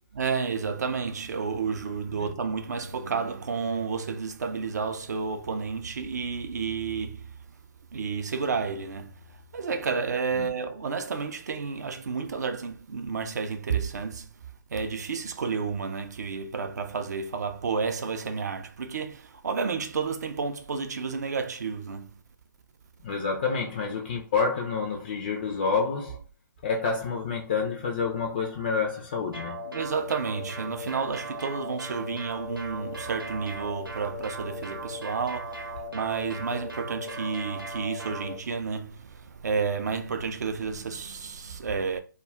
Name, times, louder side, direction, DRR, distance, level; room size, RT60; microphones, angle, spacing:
voice 1, 0.2-7.3 7.9-14.3 14.7-22.2 29.7-35.7 35.9-42.0, right 5 dB, 55° right, 0.4 m, -31 dB
voice 2, 23.0-26.2 26.6-29.6, left 5 dB, 30° left, 0.3 m, -28 dB
sound 1, 29.3-38.3, equal, 90° right, 0.8 m, -38 dB
2.3 x 2.1 x 3.3 m
figure-of-eight pair, 135°, 11 cm